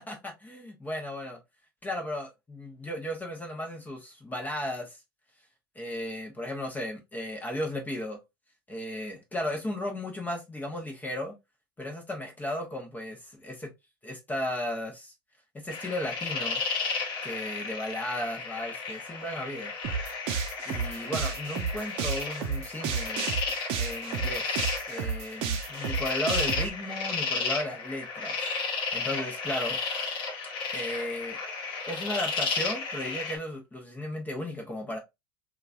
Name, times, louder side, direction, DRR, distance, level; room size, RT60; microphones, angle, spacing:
voice 1, 0.0-1.4 1.8-5.0 5.7-8.2 8.7-11.3 11.8-13.7 14.0-15.1 15.5-16.6 17.2-19.7 20.6-23.3 23.8-28.5 28.9-29.8 30.7-31.4 31.9-35.0, left 1 dB, 15° left, 0.8 m, -35 dB
sound 1, 15.7-33.4, left 4 dB, 50° left, 1.1 m, -33 dB
sound 2, 19.8-26.7, right 6 dB, 55° right, 0.6 m, -31 dB
2.9 x 2.4 x 2.4 m
hypercardioid pair, 90°, 12 cm